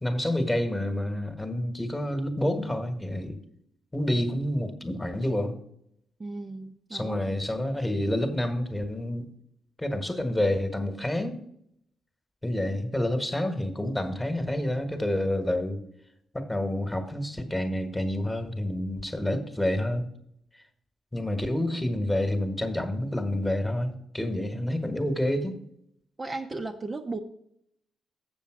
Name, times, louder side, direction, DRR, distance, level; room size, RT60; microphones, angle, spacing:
voice 1, 0.0-3.4 3.9-5.6 6.9-9.3 9.8-11.3 12.4-15.8 16.3-20.1 21.1-25.6, left 1 dB, 10° left, 7 dB, 1.4 m, -28 dB
voice 2, 6.2-7.2 26.2-27.2, right 3 dB, 25° right, 4 dB, 0.7 m, -35 dB
7.1 x 7.0 x 4.8 m, 0.71 s
cardioid pair, 90°, 0 cm